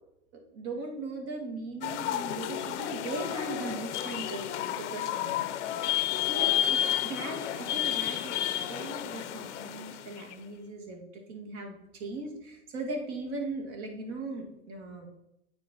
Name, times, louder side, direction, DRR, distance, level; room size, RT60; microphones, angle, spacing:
voice 1, 0.5-4.5 4.8-5.9 6.2-8.4 8.7-15.1, right 2 dB, 65° right, 2 dB, 1.9 m, -39 dB
sound 1, 1.8-10.3, left 11 dB, 90° left, 0.6 m, -31 dB
9.0 x 3.4 x 4.1 m, 0.83 s
hypercardioid pair, 105°, 35 cm